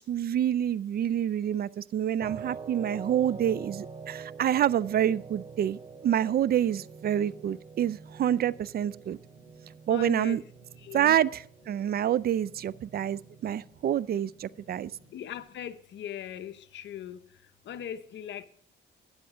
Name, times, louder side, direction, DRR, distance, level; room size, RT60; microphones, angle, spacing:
voice 1, 0.0-9.2 9.9-10.4 10.9-14.9, right 10 dB, 50° right, 0.4 m, -27 dB
sound 1, 2.2-15.2, right 5 dB, 30° right, 1.0 m, -46 dB
voice 2, 9.9-10.4 10.8-11.2 15.1-17.2 17.7-18.5, left 9 dB, 70° left, 0.9 m, -39 dB
12.5 x 9.8 x 3.7 m
cardioid pair, 90°, 20 cm